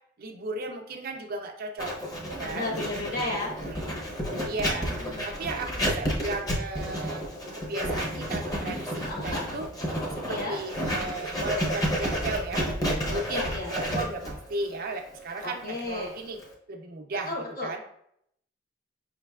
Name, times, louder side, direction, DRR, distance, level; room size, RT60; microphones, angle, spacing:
voice 1, 0.2-2.7 3.7-3.9 4.4-4.9 5.2-9.7 10.3-12.7 13.1-16.4 16.7-17.3 17.6-17.8, right 2 dB, 50° right, 4 dB, 0.5 m, -35 dB
Writing, 1.8-16.5, equal, 20° left, 0.7 m, -31 dB
voice 2, 2.4-3.5 4.4-5.5 9.0-9.4 10.3-10.6 13.0-13.7 15.4-16.1 17.3-17.7, left 2 dB, 50° left, -1 dB, 1.2 m, -34 dB
5.0 x 3.1 x 2.3 m, 0.70 s
head